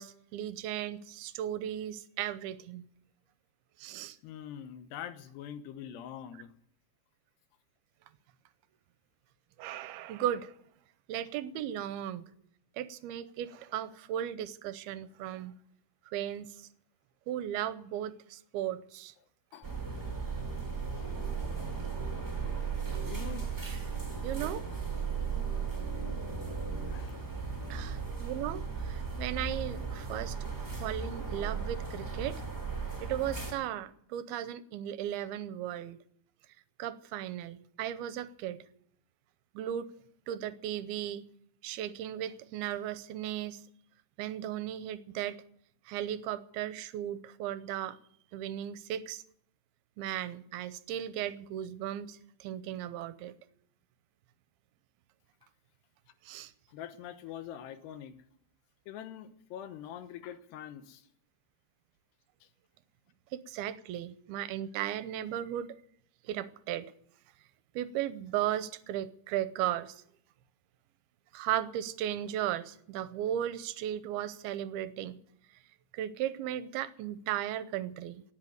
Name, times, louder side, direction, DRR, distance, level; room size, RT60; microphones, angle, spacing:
voice 1, 0.0-2.9 3.8-4.2 9.6-10.5 11.1-12.2 12.8-15.6 16.1-16.7 17.3-19.1 21.2-21.3 23.7-23.8 24.2-24.6 27.7-30.5 30.8-32.4 33.0-36.0 36.8-38.6 39.5-39.9 40.3-41.3 41.6-43.6 44.2-45.4 45.9-48.0 48.3-49.2 50.0-53.3 56.2-56.5 63.3-65.8 66.2-66.9 67.8-70.0 71.3-75.2 75.9-78.2, right 11 dB, 80° right, 2.5 m, -36 dB
voice 2, 4.2-6.5 19.5-19.7 20.9-21.0 23.1-23.5 26.8-27.1 56.7-58.2 58.9-61.1, left 10 dB, 90° left, 3.2 m, -44 dB
sound 1, 19.6-33.5, right 5 dB, 5° right, 2.2 m, -36 dB
18.5 x 8.2 x 9.3 m
omnidirectional pair, 4.7 m